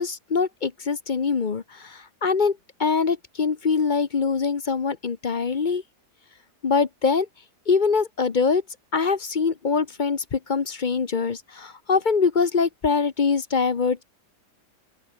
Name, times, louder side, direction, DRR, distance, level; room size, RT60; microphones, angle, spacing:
voice 1, 0.0-5.8 6.6-7.3 7.7-8.6 8.9-14.0, left 5 dB, 40° left, 0.8 m, -23 dB
open air
omnidirectional pair, 1.8 m